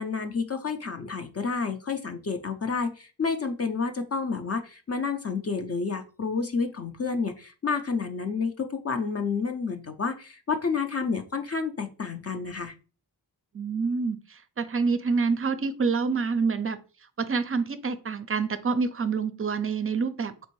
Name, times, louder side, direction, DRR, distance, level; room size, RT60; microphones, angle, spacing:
voice 1, 0.0-12.7, left 5 dB, 35° left, 7 dB, 0.5 m, -30 dB
voice 2, 13.5-16.8 17.2-20.5, right 5 dB, 35° right, 12 dB, 0.4 m, -27 dB
4.3 x 2.5 x 3.0 m, 0.35 s
cardioid pair, 55°, 41 cm